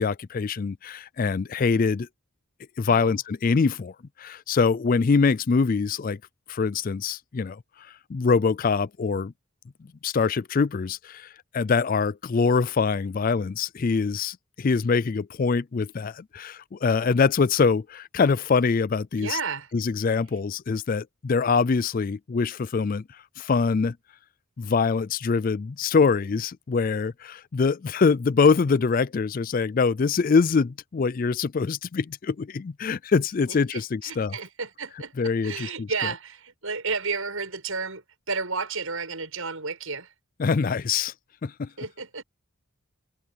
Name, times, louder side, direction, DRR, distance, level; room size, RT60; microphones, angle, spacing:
voice 1, 0.0-2.1 2.8-3.9 4.2-6.2 6.5-7.6 8.1-9.3 10.0-19.4 19.7-23.0 23.4-24.0 24.6-34.3 35.2-35.9 40.4-41.1 41.4-41.7, left 5 dB, 40° left, 0.4 m, -24 dB
voice 2, 2.9-3.2 19.2-19.7 33.5-40.1 41.8-42.2, right 4 dB, 70° right, 7.0 m, -32 dB
head